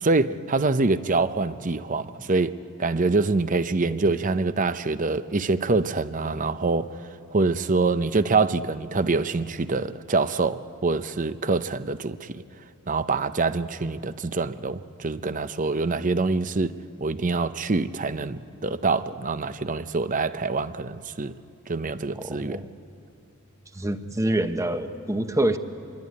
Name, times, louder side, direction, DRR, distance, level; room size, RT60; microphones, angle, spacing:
voice 1, 0.0-6.9 7.3-12.4 12.9-16.7 17.0-21.4 21.7-22.6, right 3 dB, 35° right, 0.7 m, -25 dB
voice 2, 22.1-22.7 23.8-25.6, right 1 dB, 15° right, 1.0 m, -26 dB
26.0 x 22.0 x 9.6 m
head